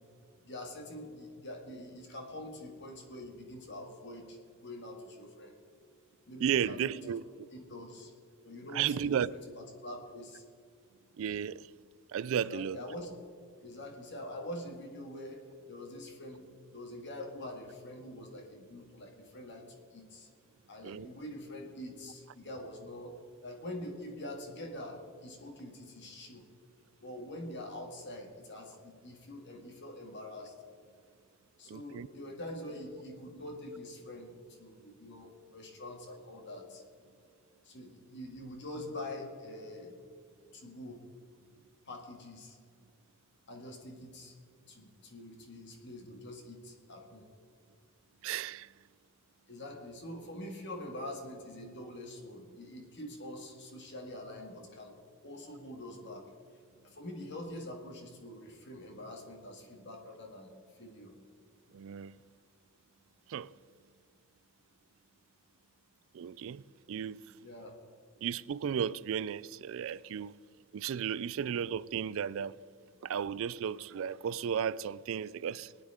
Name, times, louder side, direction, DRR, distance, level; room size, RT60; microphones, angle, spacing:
voice 1, 0.4-5.5 6.3-7.2 7.5-8.1 8.4-10.4 12.4-13.1 13.6-19.6 19.9-20.3 20.7-23.2 23.4-26.5 27.0-30.5 31.6-36.8 37.6-40.0 40.5-41.0 41.9-42.6 43.5-44.3 44.7-47.3 49.5-54.9 55.2-56.3 56.8-60.5 60.8-61.1 67.4-67.8, left 1 dB, 55° left, 2.0 m, -45 dB
voice 2, 6.4-7.2 8.7-9.3 11.2-11.7 12.1-12.8 20.8-21.1 31.7-32.1 48.2-48.7 61.7-62.2 63.3-63.5 66.1-66.6 66.9-67.3 68.2-70.3 70.7-72.6 73.0-75.7, right 8 dB, 65° right, 0.3 m, -34 dB
22.0 x 9.3 x 3.7 m
head